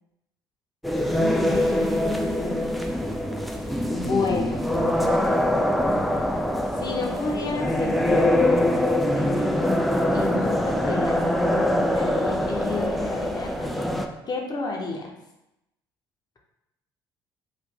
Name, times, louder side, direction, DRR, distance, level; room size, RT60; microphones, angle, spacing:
sound 1, 0.8-14.1, left 1 dB, ahead, 0.3 m, -23 dB
voice 1, 1.4-2.7 3.9-4.7 6.7-9.7 10.1-13.7 14.3-15.1, left 4 dB, 35° left, 0 dB, 0.8 m, -31 dB
3.0 x 2.5 x 3.4 m, 0.89 s
hypercardioid pair, 55°, 11 cm